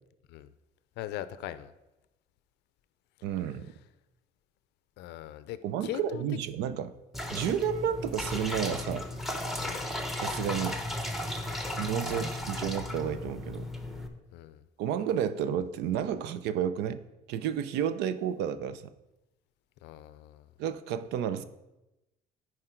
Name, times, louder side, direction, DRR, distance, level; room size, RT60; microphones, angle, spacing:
voice 1, 1.0-1.7 5.0-6.2 9.6-9.9 12.1-12.4 14.3-14.6 19.8-20.5, left 13 dB, 85° left, 14 dB, 0.5 m, -41 dB
voice 2, 3.2-3.7 5.6-6.9 7.3-9.1 10.2-10.8 11.8-13.7 14.8-17.0 17.3-18.9 20.6-21.4, right 9 dB, 90° right, 13 dB, 0.5 m, -31 dB
sound 1, 7.1-14.1, left 1 dB, ahead, 0.8 m, -35 dB
9.9 x 4.7 x 4.5 m, 0.97 s
cardioid pair, 110°, 17 cm